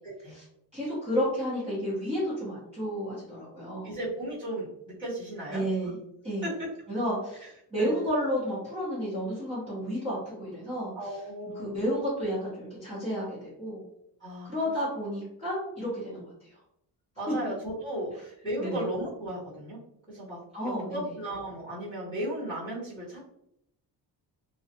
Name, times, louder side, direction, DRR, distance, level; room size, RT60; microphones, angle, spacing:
voice 1, 0.0-0.3 3.8-5.9 6.4-6.7 7.4-7.5 7.8-8.1 10.9-11.8 14.2-14.7 17.2-19.8 20.1-23.2, right 1 dB, 10° left, -11 dB, 1.0 m, -36 dB
voice 2, 0.7-3.9 5.5-6.0 6.2-6.5 6.9-11.1 11.5-13.8 14.4-16.5 17.3-17.4 18.6-18.9 20.5-21.1, equal, 15° right, -11 dB, 0.9 m, -31 dB
2.4 x 2.2 x 2.7 m, 0.76 s
cardioid pair, 160°, 42 cm